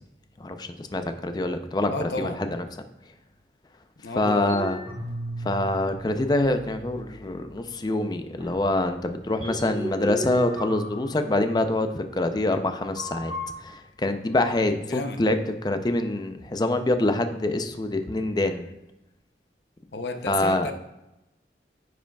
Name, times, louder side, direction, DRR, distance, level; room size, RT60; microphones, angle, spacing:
voice 1, 0.4-1.9 2.2-2.6 4.2-4.8 5.4-13.3 13.6-18.7 20.3-20.7, left 2 dB, 25° left, 7 dB, 0.4 m, -25 dB
voice 2, 1.9-2.4 4.0-4.6 14.7-15.2 19.9-20.7, left 3 dB, 70° left, 6 dB, 0.7 m, -33 dB
sound 1, 4.2-5.9 6.3-7.2 7.7-7.8 8.4-8.5 9.3-11.8 13.0-13.5, right 1 dB, 30° right, 1.9 m, -36 dB
10.0 x 4.9 x 2.3 m, 0.95 s
head